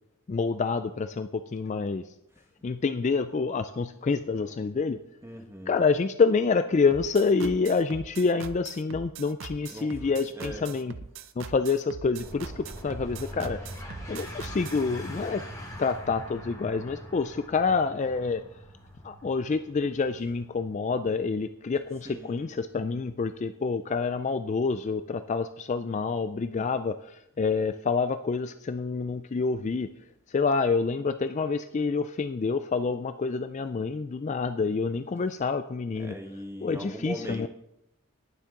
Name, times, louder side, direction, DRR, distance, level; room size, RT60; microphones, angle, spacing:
voice 1, 0.3-2.0 2.6-5.0 5.7-10.9 11.4-13.7 14.1-15.4 15.8-18.4 19.0-30.0 30.3-36.2 36.6-37.5, left 4 dB, 30° left, 11 dB, 0.3 m, -27 dB
voice 2, 5.2-5.7 9.7-10.6 22.0-22.5 35.9-37.5, equal, 10° right, 3 dB, 1.3 m, -40 dB
sound 1, 6.9-14.8, right 5 dB, 60° right, 0.6 m, -42 dB
sound 2, 12.2-23.3, equal, 15° left, 3.3 m, -43 dB
18.5 x 7.3 x 3.8 m, 0.79 s
head